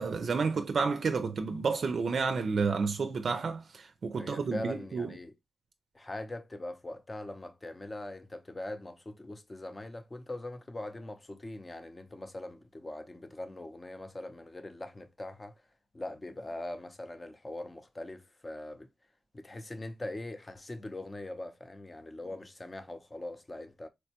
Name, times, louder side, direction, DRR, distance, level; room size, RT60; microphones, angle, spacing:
voice 1, 0.0-5.1, right 4 dB, 55° right, 0.4 m, -30 dB
voice 2, 4.2-5.3 5.9-15.5 15.9-18.9 19.3-23.9, left 1 dB, 25° left, 0.5 m, -42 dB
4.3 x 2.2 x 2.8 m
cardioid pair, 90°, 0 cm